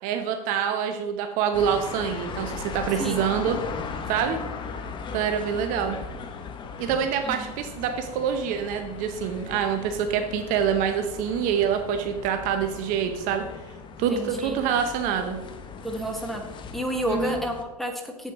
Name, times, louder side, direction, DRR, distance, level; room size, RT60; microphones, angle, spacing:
voice 1, 0.0-3.6 4.1-4.4 5.1-6.0 6.8-13.4 14.0-15.4 17.1-17.4, right 8 dB, 45° right, 6 dB, 0.8 m, -26 dB
sound 1, 1.5-17.6, left 5 dB, 25° left, 0.9 m, -38 dB
voice 2, 14.1-14.6 15.8-16.4 16.7-18.3, equal, ahead, 2 dB, 1.4 m, -30 dB
8.1 x 7.9 x 3.6 m, 1.0 s
hypercardioid pair, 105°, 20 cm